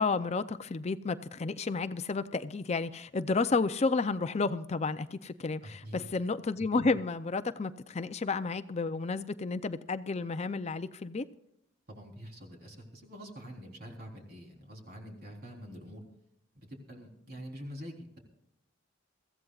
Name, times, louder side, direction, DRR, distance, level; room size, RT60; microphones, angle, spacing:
voice 1, 0.0-11.2, left 3 dB, 35° left, 12 dB, 0.5 m, -31 dB
voice 2, 5.6-6.1 11.9-16.0 16.7-18.2, equal, 55° right, 1 dB, 3.8 m, -46 dB
22.5 x 15.0 x 2.4 m, 0.79 s
head